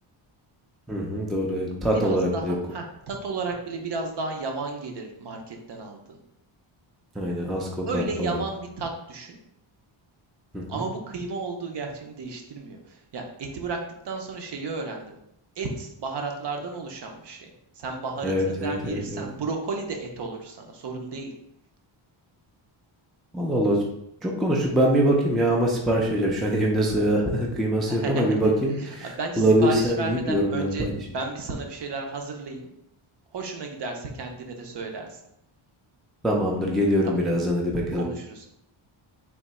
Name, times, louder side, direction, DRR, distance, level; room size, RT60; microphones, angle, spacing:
voice 1, 0.9-2.5 7.2-8.4 10.5-10.8 18.2-19.2 23.3-23.8 24.2-29.1 29.4-30.9 36.2-38.0, equal, ahead, -1 dB, 0.3 m, -23 dB
voice 2, 1.9-6.2 7.9-9.4 10.7-15.2 15.6-17.5 17.8-21.3 27.9-28.5 28.8-30.9 31.1-32.7 33.3-35.2 37.0-37.1 37.9-38.5, right 3 dB, 55° right, 3 dB, 0.8 m, -33 dB
3.5 x 2.9 x 4.2 m, 0.78 s
wide cardioid pair, 175°, 50 cm